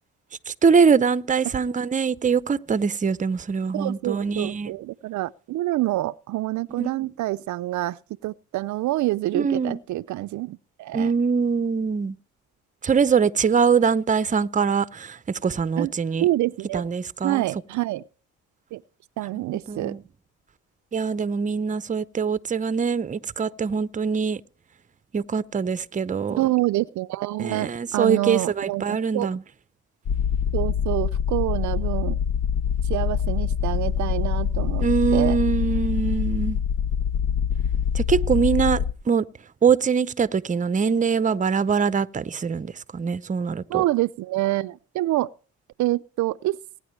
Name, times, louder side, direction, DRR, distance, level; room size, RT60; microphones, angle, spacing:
voice 1, 0.5-4.7 6.8-7.1 9.3-9.8 10.9-12.1 12.8-16.2 16.7-17.4 19.7-20.0 20.9-24.4 25.1-26.4 27.4-29.4 34.8-36.6 37.9-39.2 39.6-43.8, right 6 dB, 25° right, 0.6 m, -23 dB
voice 2, 3.7-11.1 15.8-15.9 16.2-16.8 17.2-18.0 18.7-18.8 19.2-20.0 26.4-29.3 30.5-32.2 32.8-34.9 35.1-35.4 43.7-45.3 45.8-46.6, right 16 dB, 70° right, 0.5 m, -27 dB
sound 1, 30.1-38.9, left 8 dB, 60° left, 0.7 m, -25 dB
20.5 x 9.6 x 3.2 m
cardioid pair, 90°, 30 cm